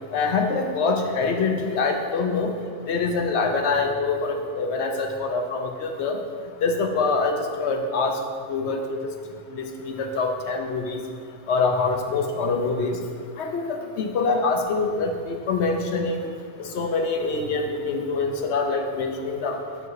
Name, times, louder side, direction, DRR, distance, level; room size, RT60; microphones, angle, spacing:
voice 1, 0.1-2.5 2.9-6.2 6.6-8.2 8.5-9.0 9.5-11.0 11.5-13.0 13.4-16.3 16.6-19.6, left 4 dB, 60° left, 4 dB, 0.9 m, -25 dB
6.0 x 5.5 x 4.7 m, 2.1 s
omnidirectional pair, 1.4 m